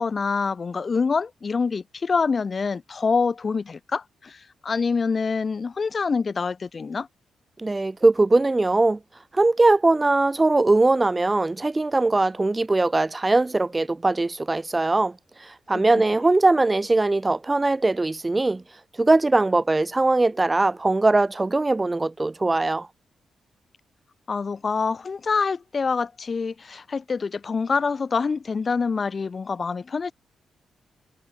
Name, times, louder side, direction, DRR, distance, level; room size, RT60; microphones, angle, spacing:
voice 1, 0.0-7.1 15.7-16.0 24.3-30.1, left 5 dB, 35° left, 5.7 m, -26 dB
voice 2, 7.6-9.0 9.3-15.1 15.4-18.6 19.0-22.9, right 2 dB, 15° right, 1.3 m, -21 dB
cardioid pair, 135°, 0 cm